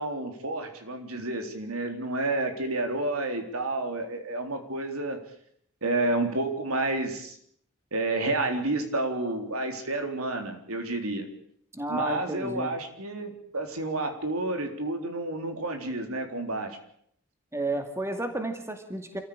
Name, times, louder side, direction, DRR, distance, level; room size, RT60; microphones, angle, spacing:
voice 1, 0.0-5.2 5.8-7.4 7.9-11.3 11.9-16.8, right 2 dB, 85° right, 5 dB, 3.9 m, -30 dB
voice 2, 11.7-12.7 17.5-19.2, right 1 dB, 10° right, 6 dB, 2.3 m, -32 dB
27.0 x 14.5 x 8.8 m, 0.68 s
head